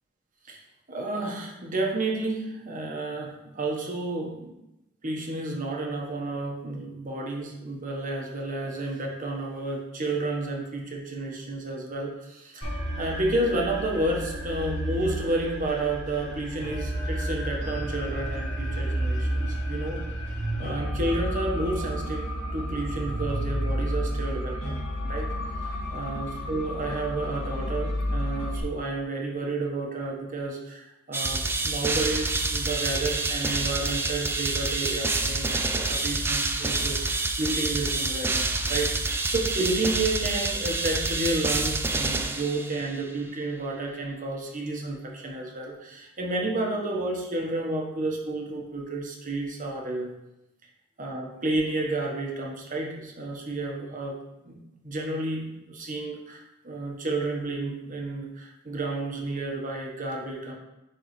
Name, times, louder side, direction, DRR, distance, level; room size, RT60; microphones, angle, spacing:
voice 1, 0.9-4.5 5.0-20.0 20.6-50.1 51.0-54.2 54.4-54.6 54.8-60.5, right 2 dB, 40° right, -1 dB, 1.1 m, -31 dB
sound 1, 12.6-28.6, equal, 65° left, 2.3 m, -31 dB
sound 2, 31.1-43.0, right 3 dB, 10° right, 0.3 m, -27 dB
9.3 x 3.5 x 3.1 m, 0.92 s
head